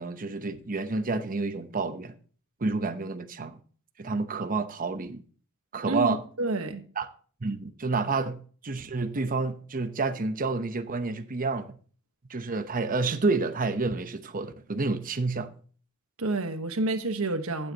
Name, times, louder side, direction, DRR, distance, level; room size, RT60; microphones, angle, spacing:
voice 1, 0.0-2.2 2.6-3.6 4.0-5.2 5.7-6.2 7.0-7.1 7.4-11.7 12.3-15.5, right 3 dB, 40° right, 0.8 m, -29 dB
voice 2, 5.9-6.8 16.2-17.7, right 2 dB, 70° right, 1.2 m, -29 dB
15.5 x 7.9 x 2.8 m
head